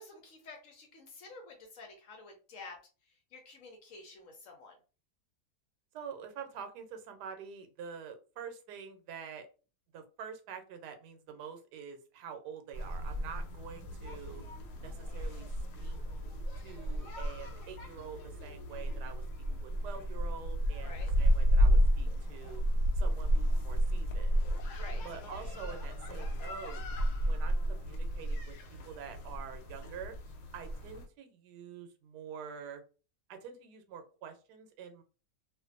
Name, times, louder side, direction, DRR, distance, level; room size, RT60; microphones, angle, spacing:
voice 1, 0.0-2.8 3.3-4.8 20.8-21.1 24.8-25.0, left 3 dB, 65° left, 2 dB, 0.9 m, -50 dB
voice 2, 5.9-9.5 9.9-14.4 14.8-15.5 15.8-15.9 16.6-22.6 22.9-24.3 25.0-26.8 27.2-28.5 28.9-30.1 30.5-32.8 33.3-35.0, right 7 dB, 85° right, 7 dB, 1.2 m, -46 dB
sound 1, 12.7-31.1, equal, 85° left, 1.2 m, -32 dB
2.5 x 2.5 x 2.4 m, 0.35 s
omnidirectional pair, 1.7 m